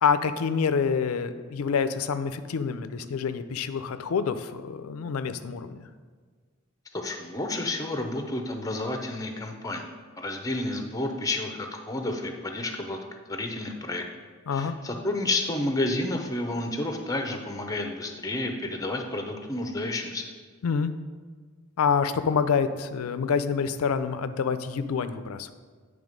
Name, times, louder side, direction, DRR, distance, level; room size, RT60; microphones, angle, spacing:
voice 1, 0.0-5.8 14.5-14.8 20.6-20.9 21.8-25.5, left 6 dB, 85° left, 11 dB, 0.4 m, -27 dB
voice 2, 6.9-9.9 10.2-13.0 13.3-14.0 14.5-20.2, left 2 dB, 15° left, 4 dB, 0.6 m, -30 dB
8.9 x 3.4 x 5.1 m, 1.5 s
head